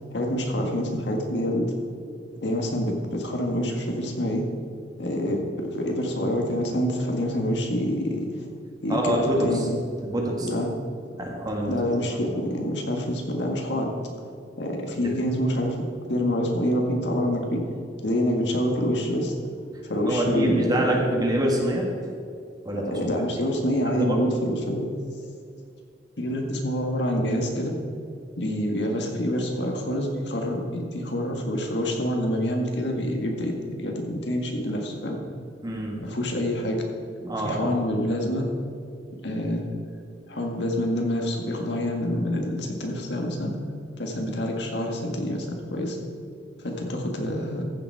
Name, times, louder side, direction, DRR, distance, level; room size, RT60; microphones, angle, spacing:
voice 1, 0.1-1.7 2.4-4.5 5.0-8.5 8.8-9.8 10.4-10.7 11.7-14.0 14.6-17.6 18.0-19.3 19.8-20.8 22.7-24.9 26.2-27.7 28.4-35.2 36.0-36.8 37.4-38.4 39.2-39.6 40.3-43.5 44.0-46.0 46.6-47.6, equal, 70° left, 1 dB, 1.8 m, -27 dB
voice 2, 8.9-9.7 10.0-10.5 11.2-11.8 15.0-15.1 20.1-21.9 22.7-23.0 23.9-24.2 35.6-36.2 37.2-37.8, right 1 dB, 20° right, -1 dB, 1.8 m, -26 dB
14.5 x 7.2 x 4.8 m, 2.3 s
head